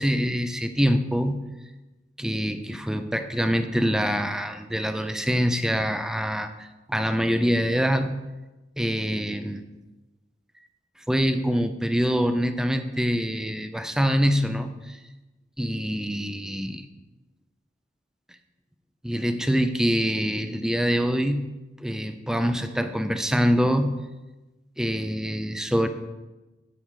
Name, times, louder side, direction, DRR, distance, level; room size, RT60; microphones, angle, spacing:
voice 1, 0.0-1.4 2.2-8.1 8.8-9.6 11.1-15.0 15.6-16.9 19.0-21.4 21.8-24.0 24.8-25.9, equal, 5° right, 8 dB, 0.5 m, -25 dB
8.8 x 4.9 x 6.7 m, 1.1 s
head